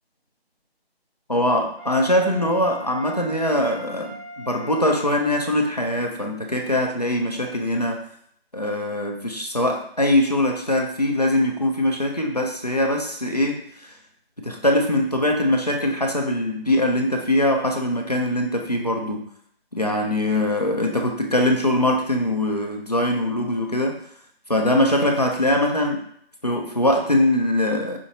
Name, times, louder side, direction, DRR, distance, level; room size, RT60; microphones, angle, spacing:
voice 1, 1.3-8.1 8.5-13.9 14.4-19.3 19.7-24.0 24.5-26.1 26.4-28.0, left 1 dB, 40° left, 2 dB, 0.4 m, -22 dB
Wind instrument woodwind instrument, 1.8-5.5, left 1 dB, 35° right, 1.3 m, -40 dB
5.0 x 2.5 x 2.7 m, 0.66 s
figure-of-eight pair, 180°, 32 cm